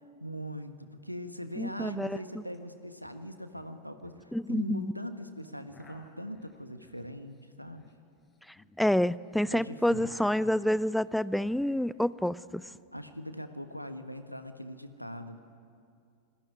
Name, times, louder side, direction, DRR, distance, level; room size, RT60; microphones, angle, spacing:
voice 1, 0.2-7.8 9.5-10.1 12.9-15.4, equal, 90° left, 9 dB, 1.5 m, -41 dB
voice 2, 1.6-2.2 4.3-4.9 8.8-12.7, left 1 dB, ahead, 19 dB, 0.6 m, -28 dB
sound 1, 2.5-2.6 2.8-3.2 3.5-4.7 5.4-9.4 9.6-11.9 12.2-13.1, left 2 dB, 20° left, 4.7 m, -58 dB
28.5 x 20.5 x 9.7 m, 2.4 s
figure-of-eight pair, 90°, 0 cm